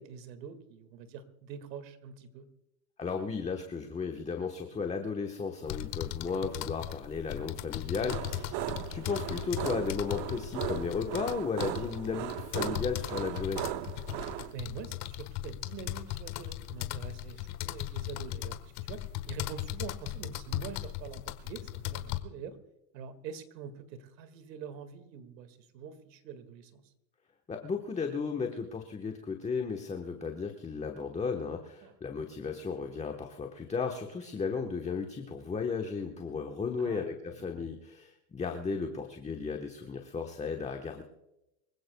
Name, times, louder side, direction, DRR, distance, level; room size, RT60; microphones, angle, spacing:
voice 1, 0.0-2.5 7.9-8.1 14.5-22.6 22.9-26.8 31.8-31.9 36.8-37.6, right 6 dB, 80° right, 10 dB, 2.1 m, -45 dB
voice 2, 3.0-13.6 27.5-41.0, left 5 dB, 15° left, 4 dB, 1.1 m, -35 dB
sound 1, 5.6-22.2, left 14 dB, 50° left, 1.4 m, -38 dB
sound 2, 8.1-14.5, right 14 dB, 45° right, 0.8 m, -38 dB
24.5 x 16.5 x 2.3 m, 0.92 s
supercardioid pair, 115°, 50 cm